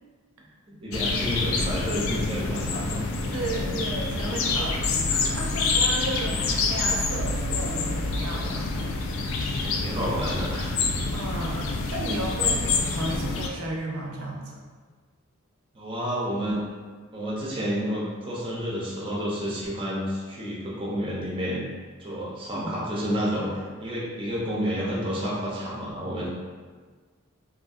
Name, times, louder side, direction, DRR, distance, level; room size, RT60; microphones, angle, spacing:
voice 1, 0.7-3.0 4.2-4.8 9.6-10.7 15.7-16.6 17.1-21.6 22.0-26.3, equal, 25° right, -6 dB, 0.5 m, -30 dB
sound 1, 0.9-13.5, left 3 dB, 65° left, 0.3 m, -27 dB
voice 2, 3.3-9.4 11.1-14.6 22.5-22.7, right 1 dB, 85° right, -1 dB, 0.5 m, -34 dB
2.6 x 2.6 x 2.4 m, 1.5 s
head